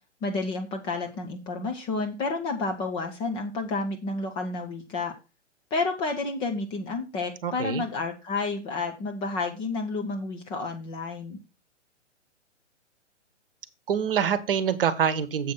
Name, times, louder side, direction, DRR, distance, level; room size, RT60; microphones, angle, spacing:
voice 1, 0.2-5.1 5.7-11.4, left 3 dB, 15° left, 3 dB, 0.6 m, -30 dB
voice 2, 7.4-7.8 13.9-15.5, right 8 dB, 50° right, 14 dB, 1.1 m, -25 dB
7.6 x 5.2 x 5.8 m, 0.29 s
figure-of-eight pair, 125°, 36 cm